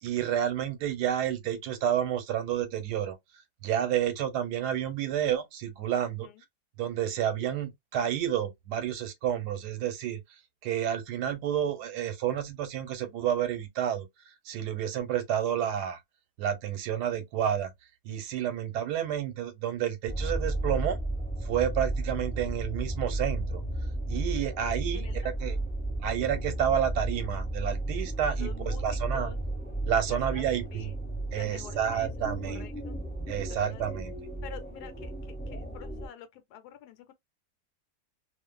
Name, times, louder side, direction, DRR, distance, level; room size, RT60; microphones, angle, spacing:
voice 1, 0.0-3.2 3.6-6.3 6.8-10.2 10.6-16.0 16.4-17.7 18.0-21.0 21.4-23.6 24.1-25.6 26.0-29.3 29.9-30.9 31.3-32.7 33.3-34.1, right 9 dB, 90° right, 1.2 m, -30 dB
sound 1, 20.1-36.1, right 2 dB, 10° left, 1.1 m, -33 dB
voice 2, 24.9-25.7 28.4-29.4 30.1-30.9 31.3-33.0 33.5-34.0 34.4-37.1, left 9 dB, 80° left, 1.2 m, -48 dB
2.5 x 2.4 x 2.2 m
omnidirectional pair, 1.7 m